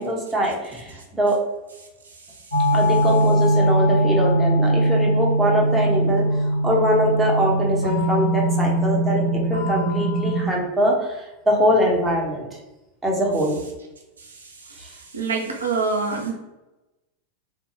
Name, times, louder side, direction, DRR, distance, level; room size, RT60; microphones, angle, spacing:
voice 1, 0.0-1.4 2.7-6.2 6.6-12.6 13.0-13.6 14.8-14.9, equal, 10° right, -2 dB, 0.7 m, -22 dB
sound 1, 2.5-10.4, right 1 dB, 80° left, 1.0 m, -21 dB
voice 2, 15.1-16.3, right 4 dB, 75° right, 0 dB, 0.4 m, -24 dB
2.4 x 2.1 x 3.0 m, 1.0 s
figure-of-eight pair, 90°, 0 cm